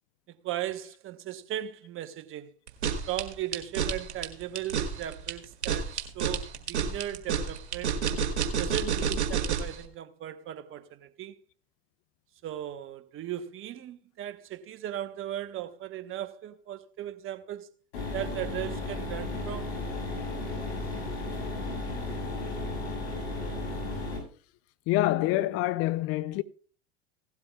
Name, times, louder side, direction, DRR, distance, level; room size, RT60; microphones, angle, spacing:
voice 1, 0.3-2.5 3.1-8.0 8.6-11.3 12.4-17.7 18.1-19.8, right 12 dB, 40° right, 1.1 m, -37 dB
sound 1, 2.7-9.8, right 7 dB, 80° right, 1.7 m, -29 dB
sound 2, 17.9-24.2, left 2 dB, 70° left, 7.1 m, -34 dB
voice 2, 24.9-26.4, left 16 dB, 45° left, 0.5 m, -26 dB
17.0 x 12.0 x 2.4 m
hypercardioid pair, 85°, 33 cm